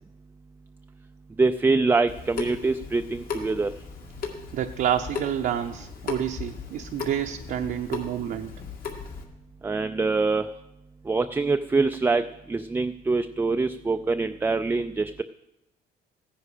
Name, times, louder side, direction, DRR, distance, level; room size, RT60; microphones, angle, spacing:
voice 1, 1.4-3.7 9.6-10.5 11.1-12.2 12.5-15.2, right 3 dB, 10° right, 9 dB, 0.4 m, -24 dB
Water tap faucet / Sink (filling or washing) / Drip, 2.1-9.2, left 5 dB, 55° left, 2.2 m, -37 dB
voice 2, 4.5-8.5, right 10 dB, 60° right, 4 dB, 0.7 m, -28 dB
15.5 x 10.0 x 5.0 m, 0.93 s
cardioid pair, 110°, 17 cm